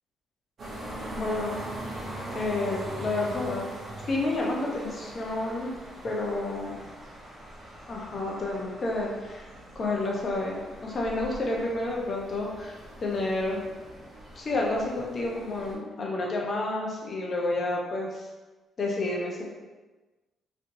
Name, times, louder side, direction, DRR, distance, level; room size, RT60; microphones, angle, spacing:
sound 1, 0.6-15.7, right 1 dB, 45° right, 1.0 m, -41 dB
voice 1, 1.1-1.7 2.3-3.7 4.1-5.7 6.0-6.8 7.9-9.5 9.7-13.6 14.4-18.2 18.8-19.4, left 2 dB, 45° left, -2 dB, 0.8 m, -30 dB
3.3 x 2.7 x 2.7 m, 1.2 s
cardioid pair, 90°, 0 cm